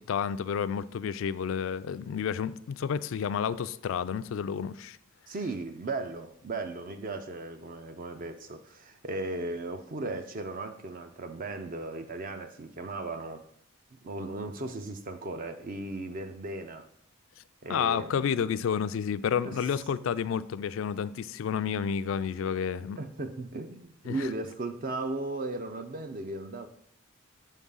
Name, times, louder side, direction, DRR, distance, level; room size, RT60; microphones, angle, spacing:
voice 1, 0.0-5.0 17.7-23.0 24.1-24.3, left 7 dB, 65° left, 0.3 m, -30 dB
voice 2, 5.3-13.5 14.0-16.9 17.6-18.4 19.4-19.6 23.0-26.7, right 2 dB, 40° right, 0.4 m, -36 dB
6.5 x 3.6 x 5.4 m
head